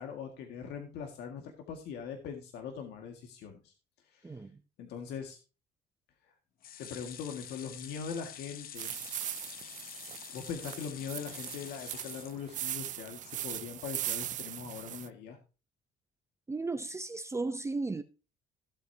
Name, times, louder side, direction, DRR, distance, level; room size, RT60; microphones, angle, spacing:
voice 1, 0.0-3.7 4.1-4.4 4.8-5.4 6.8-8.9 10.3-15.4, left 6 dB, 80° left, 2.0 m, -41 dB
sound 1, 6.6-12.9 13.3-13.4 13.7-13.8, left 9 dB, 60° left, 1.0 m, -47 dB
sound 2, 8.7-15.1, right 11 dB, 50° right, 0.5 m, -39 dB
voice 2, 16.5-18.0, right 3 dB, 15° right, 0.7 m, -35 dB
16.0 x 8.0 x 2.8 m
cardioid pair, 110°, 17 cm